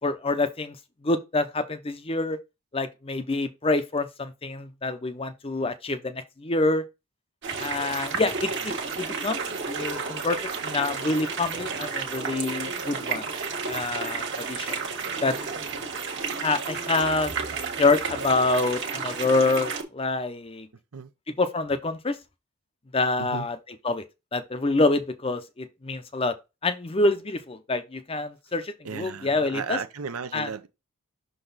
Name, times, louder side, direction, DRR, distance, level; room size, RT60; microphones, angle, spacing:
voice 1, 0.0-0.8 1.0-2.4 2.7-6.8 7.6-9.4 9.7-10.4 10.6-13.2 13.7-14.8 15.2-15.4 16.4-17.3 17.8-20.7 21.4-22.2 22.9-23.6 23.8-24.0 24.3-26.3 26.6-29.8 30.3-30.5, left 3 dB, 25° left, 0.6 m, -26 dB
sound 1, 7.4-19.8, right 5 dB, 55° right, 1.4 m, -32 dB
voice 2, 28.8-30.7, right 6 dB, 85° right, 0.7 m, -34 dB
6.2 x 3.9 x 4.0 m
head